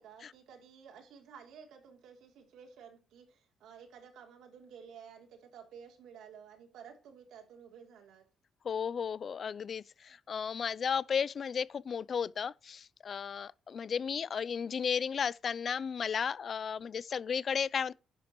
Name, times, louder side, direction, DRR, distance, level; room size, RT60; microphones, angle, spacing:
voice 1, 0.0-8.2 14.1-14.3, right 7 dB, 85° right, 3.1 m, -53 dB
voice 2, 8.6-17.9, left 7 dB, 50° left, 0.5 m, -34 dB
11.0 x 10.0 x 3.1 m
cardioid pair, 90°, 0 cm